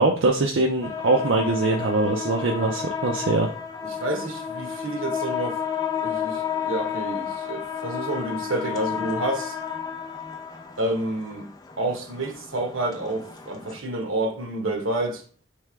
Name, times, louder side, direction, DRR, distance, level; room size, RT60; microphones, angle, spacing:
voice 1, 0.0-3.5, right 2 dB, 75° right, 0.6 m, -22 dB
sound 1, 0.8-13.8, left 8 dB, 20° left, 0.4 m, -32 dB
voice 2, 3.8-5.6 6.0-9.6 10.8-11.5 11.8-15.2, right 2 dB, 90° right, 1.2 m, -29 dB
3.4 x 3.3 x 4.8 m
head